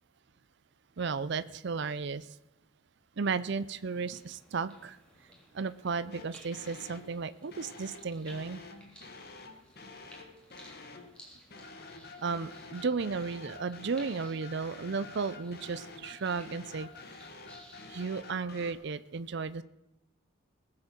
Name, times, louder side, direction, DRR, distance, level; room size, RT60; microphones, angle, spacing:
voice 1, 1.0-2.4 3.2-5.0 5.5-8.6 12.2-16.9 17.9-19.6, right 4 dB, 55° right, 14 dB, 0.5 m, -34 dB
sound 1, 3.2-18.1, equal, 5° left, 3.0 m, -58 dB
sound 2, 6.1-7.1 7.5-11.1 11.5-18.7, left 3 dB, 50° left, 1.6 m, -48 dB
19.5 x 7.8 x 6.0 m, 0.90 s
head